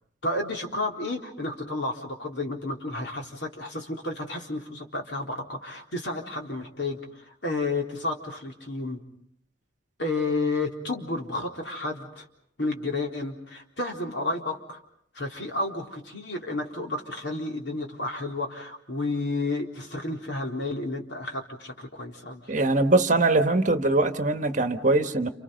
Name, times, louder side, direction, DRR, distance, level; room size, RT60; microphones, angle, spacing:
voice 1, 0.2-9.0 10.0-12.3 12.6-14.8 15.1-22.5, left 2 dB, 65° left, 1 dB, 3.9 m, -31 dB
voice 2, 22.5-25.3, right 2 dB, 40° right, 8 dB, 1.5 m, -22 dB
30.0 x 29.5 x 5.3 m, 0.66 s
head